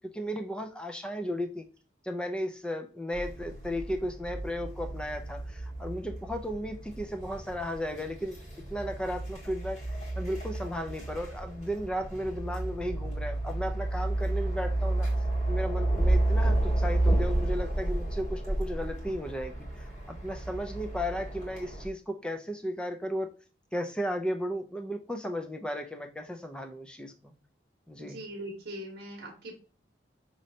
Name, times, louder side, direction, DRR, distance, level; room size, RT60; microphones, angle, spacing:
voice 1, 0.0-1.6 2.0-8.4 8.7-9.8 10.2-15.1 15.5-23.3 23.7-27.3 27.9-28.2, equal, 5° left, 6 dB, 0.4 m, -35 dB
sound 1, 3.1-21.9, right 1 dB, 35° left, 1.7 m, -31 dB
voice 2, 28.0-29.5, right 1 dB, 60° right, 1 dB, 0.9 m, -41 dB
5.2 x 3.1 x 2.7 m, 0.36 s
head